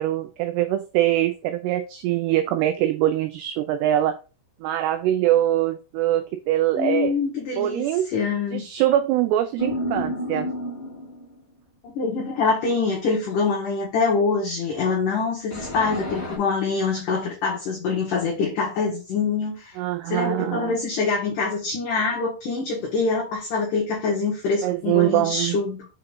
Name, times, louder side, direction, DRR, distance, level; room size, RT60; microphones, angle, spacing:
voice 1, 0.0-4.2 4.6-7.1 7.6-8.1 8.5-10.5 19.8-20.8 24.6-25.6, right 13 dB, 90° right, 8 dB, 2.3 m, -23 dB
voice 2, 6.7-8.7 11.8-19.8 20.1-25.9, left 4 dB, 65° left, -3 dB, 2.2 m, -25 dB
sound 1, 9.6-11.4 15.5-16.4, left 1 dB, 20° left, 1.3 m, -30 dB
6.8 x 3.9 x 3.5 m, 0.31 s
omnidirectional pair, 5.4 m